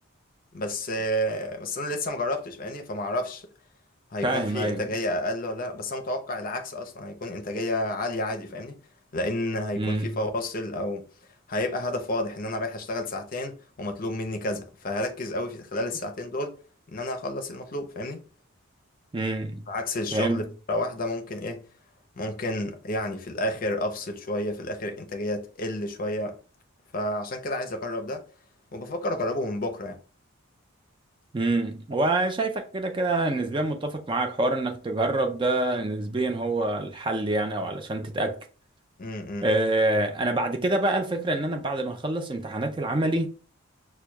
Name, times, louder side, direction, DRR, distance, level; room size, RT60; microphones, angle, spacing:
voice 1, 0.5-3.5 4.1-8.8 9.1-11.0 11.5-16.5 16.9-18.2 19.7-21.6 22.2-26.3 26.9-28.2 28.7-30.0 39.0-39.5, left 1 dB, 40° left, 0.6 m, -30 dB
voice 2, 4.2-4.8 9.8-10.1 19.1-19.6 20.1-20.4 31.3-38.4 39.4-43.3, right 2 dB, 20° right, 0.4 m, -26 dB
6.1 x 2.2 x 2.2 m
head